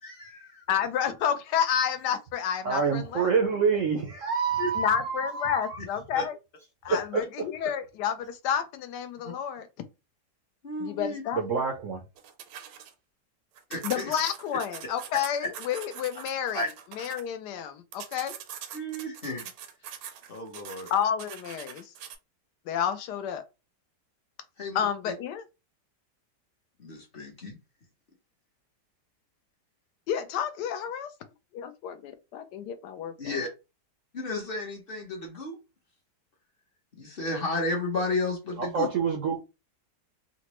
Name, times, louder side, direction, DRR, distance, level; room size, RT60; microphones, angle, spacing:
voice 1, 0.0-0.6 4.6-4.7 6.1-6.2 6.9-7.0 9.2-9.3 10.6-11.2 13.7-14.0 15.4-15.5 16.5-16.7 18.7-19.5 20.3-20.9 24.6-24.8 25.1-25.2 26.8-27.6 33.2-33.5 34.1-35.6 37.0-38.9, left 2 dB, 45° left, 0.8 m, -32 dB
voice 2, 0.7-3.3 3.6-3.8 4.7-6.4 6.8-9.7 10.8-11.6 13.8-16.7 17.0-18.4 20.9-21.9 22.7-23.4 24.7-25.4 30.1-31.1 31.5-33.4, left 8 dB, 80° left, 1.1 m, -30 dB
voice 3, 2.6-5.8 11.3-12.0 38.7-39.4, right 5 dB, 70° right, 0.7 m, -27 dB
sound 1, 12.2-12.9 13.6-17.2 17.9-22.2, right 9 dB, 90° right, 1.3 m, -43 dB
3.9 x 2.1 x 2.9 m
omnidirectional pair, 1.9 m